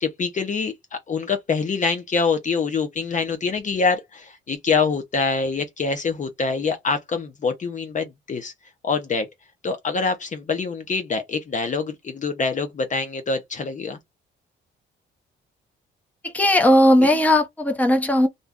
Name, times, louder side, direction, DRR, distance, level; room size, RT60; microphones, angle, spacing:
voice 1, 0.0-8.5 8.8-9.3 9.6-14.0 17.0-17.1, left 4 dB, 40° left, 0.6 m, -25 dB
voice 2, 16.3-18.3, left 1 dB, 10° left, 0.8 m, -17 dB
2.6 x 2.2 x 3.5 m
cardioid pair, 90°, 20 cm